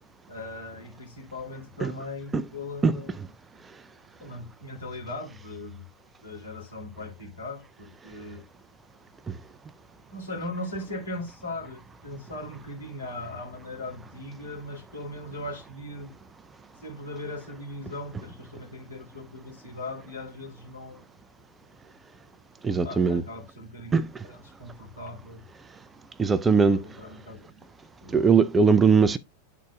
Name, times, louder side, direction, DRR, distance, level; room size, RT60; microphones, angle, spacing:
voice 1, 0.3-3.2 4.2-5.9 6.2-8.5 10.1-16.2 16.8-21.1 22.8-25.5 26.7-27.6 28.0-28.3, left 2 dB, 75° left, 2.6 m, -39 dB
voice 2, 22.6-23.2 23.9-24.1 26.2-26.8 28.1-29.2, right 5 dB, 15° right, 0.4 m, -20 dB
11.5 x 4.0 x 2.3 m
figure-of-eight pair, 90°, 0 cm